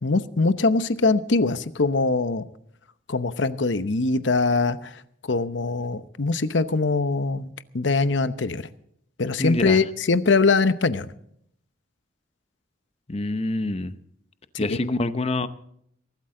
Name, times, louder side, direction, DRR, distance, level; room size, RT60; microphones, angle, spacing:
voice 1, 0.0-2.4 3.1-4.9 5.2-8.7 9.2-11.1 14.7-14.8, left 3 dB, 70° left, 13 dB, 0.9 m, -22 dB
voice 2, 9.4-9.8 13.1-13.9 14.6-15.5, left 2 dB, 30° left, 12 dB, 0.8 m, -26 dB
23.0 x 13.0 x 3.8 m, 0.68 s
head